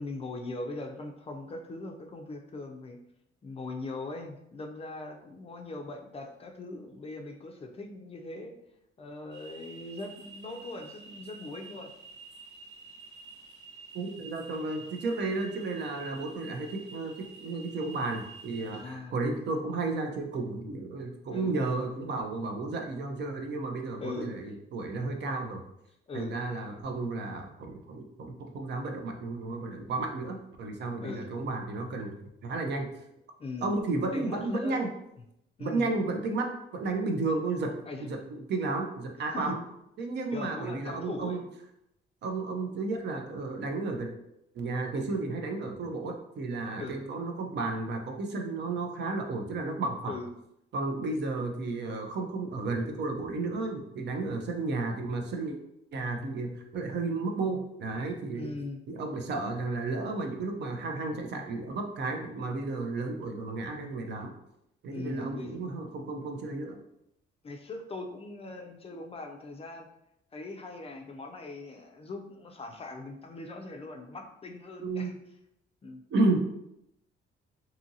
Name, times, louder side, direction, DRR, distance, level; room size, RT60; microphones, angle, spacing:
voice 1, 0.0-3.0 3.4-8.6 9.0-11.9 18.7-19.2 21.3-21.5 24.0-24.4 26.1-26.4 31.0-31.3 33.4-33.7 34.1-34.9 35.6-35.9 37.9-38.1 39.2-39.6 40.3-41.4 46.8-47.0 50.1-50.3 58.3-58.8 64.9-65.6 67.4-69.9 70.3-75.1 75.8-76.0, left 2 dB, 30° left, 3 dB, 0.4 m, -40 dB
sound 1, 9.3-18.9, right 4 dB, 80° right, 0.9 m, -49 dB
voice 2, 13.9-17.1 17.4-25.6 26.1-32.9 33.6-34.9 35.6-39.6 40.0-41.4 42.2-44.1 44.5-50.2 50.7-55.6 55.9-58.5 58.9-64.3 64.8-66.8 74.8-75.1 76.1-76.4, right 3 dB, 60° right, 3 dB, 0.5 m, -33 dB
2.7 x 2.6 x 2.6 m, 0.81 s
cardioid pair, 90°, 20 cm